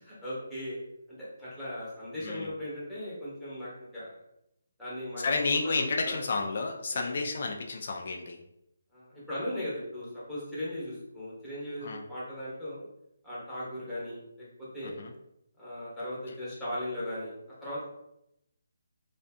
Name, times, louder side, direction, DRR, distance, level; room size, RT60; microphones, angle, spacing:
voice 1, 0.0-0.8 1.2-4.1 4.8-6.2 6.9-7.2 8.9-12.8 13.2-14.9 15.6-17.3 17.6-17.8, left 1 dB, ahead, -10 dB, 0.8 m, -38 dB
voice 2, 5.2-8.4 11.8-12.0 14.8-15.1, left 3 dB, 50° left, 2 dB, 0.3 m, -31 dB
2.5 x 2.5 x 2.2 m, 0.82 s
hypercardioid pair, 165°, 0 cm